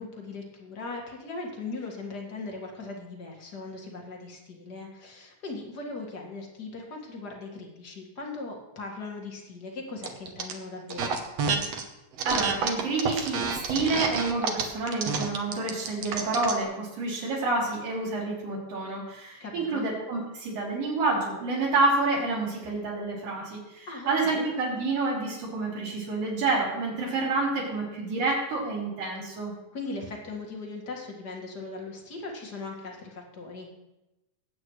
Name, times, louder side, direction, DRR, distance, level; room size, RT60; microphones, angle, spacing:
voice 1, 0.0-11.2 19.4-19.9 23.9-24.4 29.7-33.7, left 3 dB, 35° left, 0 dB, 1.9 m, -39 dB
sound 1, 10.0-10.5 10.9-11.8 12.2-16.6, right 5 dB, 65° right, 1.8 m, -29 dB
voice 2, 12.3-29.5, right 3 dB, 80° right, -7 dB, 5.2 m, -28 dB
20.5 x 8.6 x 3.2 m, 0.98 s
omnidirectional pair, 3.9 m